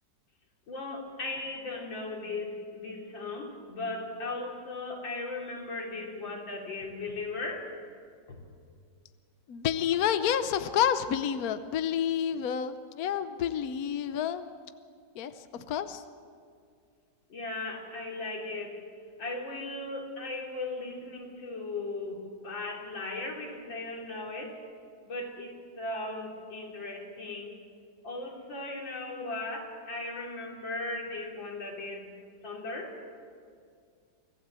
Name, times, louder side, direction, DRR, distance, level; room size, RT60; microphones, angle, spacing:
voice 1, 0.7-7.7 8.3-8.4 17.3-18.8 19.2-24.6 25.0-27.5 28.0-32.1 32.4-33.0, left 2 dB, 85° left, 0 dB, 3.9 m, -37 dB
voice 2, 9.5-14.7 15.2-16.0, left 9 dB, 60° left, 10 dB, 1.1 m, -29 dB
25.0 x 15.5 x 7.5 m, 2.3 s
omnidirectional pair, 2.0 m